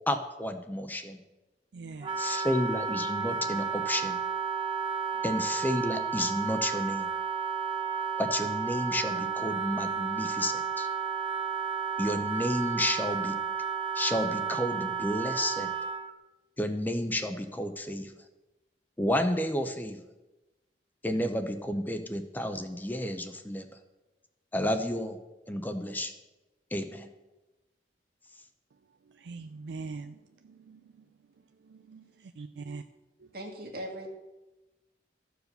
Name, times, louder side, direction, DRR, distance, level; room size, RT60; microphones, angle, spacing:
voice 1, 0.1-1.2 2.2-4.2 5.2-7.1 8.2-10.9 12.0-13.3 13.9-15.7 16.6-18.1 19.0-20.0 21.0-23.7 24.5-25.2 25.5-26.1 26.7-27.1, left 1 dB, 10° left, 7 dB, 0.6 m, -31 dB
voice 2, 1.7-2.4 29.0-31.1 31.6-32.8 33.2-33.3, right 4 dB, 75° right, 8 dB, 0.4 m, -43 dB
Wind instrument woodwind instrument, 2.0-16.1, right 6 dB, 30° right, 0.7 m, -32 dB
voice 3, 33.3-34.1, right 1 dB, 60° right, 1 dB, 2.0 m, -39 dB
13.0 x 4.8 x 6.6 m, 1.1 s
head